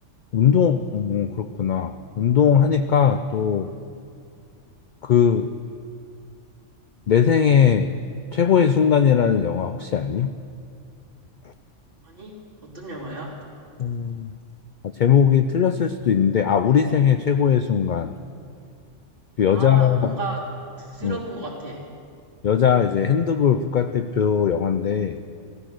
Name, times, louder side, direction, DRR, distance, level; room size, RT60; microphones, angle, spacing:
voice 1, 0.3-3.7 5.0-5.6 7.1-7.9 8.3-10.3 13.8-14.3 15.0-18.1 19.4-20.1 21.0-21.2 22.4-25.2, left 7 dB, 60° left, 10 dB, 0.5 m, -19 dB
voice 2, 12.0-13.3 19.5-20.5 20.8-21.8, right 3 dB, 45° right, -5 dB, 3.3 m, -34 dB
15.5 x 14.0 x 6.4 m, 2.3 s
omnidirectional pair, 1.3 m